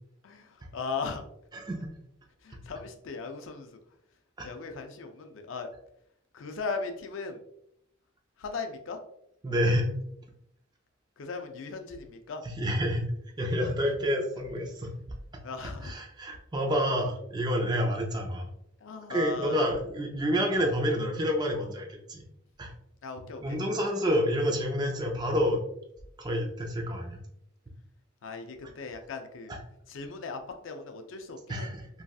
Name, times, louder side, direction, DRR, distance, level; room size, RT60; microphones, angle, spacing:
voice 1, 0.2-1.2 2.4-3.8 4.4-5.7 6.3-7.4 8.4-9.0 11.2-12.4 15.4-15.9 18.8-19.7 23.0-23.6 28.2-29.5 29.9-31.7, left 4 dB, 80° left, 6 dB, 0.4 m, -38 dB
voice 2, 1.5-1.9 4.4-4.5 9.4-9.9 12.4-14.9 15.8-18.5 19.1-22.2 22.6-22.7 23.4-25.6 26.2-27.2 29.5-29.6 31.5-31.9, equal, 20° right, 1 dB, 0.4 m, -28 dB
3.1 x 2.6 x 2.3 m, 0.76 s
head